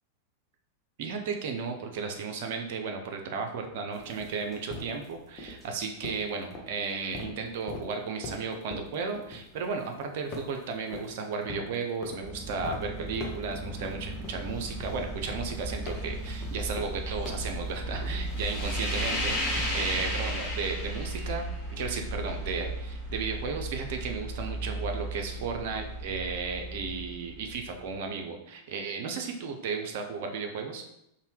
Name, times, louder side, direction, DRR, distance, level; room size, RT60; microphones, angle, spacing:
voice 1, 1.0-30.8, right 5 dB, 50° right, 4 dB, 0.4 m, -34 dB
sound 1, 3.8-9.9 10.3-11.1 11.5-12.2 12.6-12.8 13.2-13.9 14.2-18.3 18.6-20.1, left 3 dB, 25° left, 0.6 m, -42 dB
sound 2, 3.9-5.1 5.4-5.6 6.0-6.2 6.5-6.6 6.8-6.9 7.5-7.6 8.4-8.5 8.9-9.0 10.3-10.4 11.0-11.1 12.2-20.5, right 1 dB, 10° right, 0.7 m, -42 dB
sound 3, 14.0-27.9, right 1 dB, 45° left, 1.1 m, -34 dB
2.6 x 2.1 x 3.2 m, 0.80 s
figure-of-eight pair, 90°, 0 cm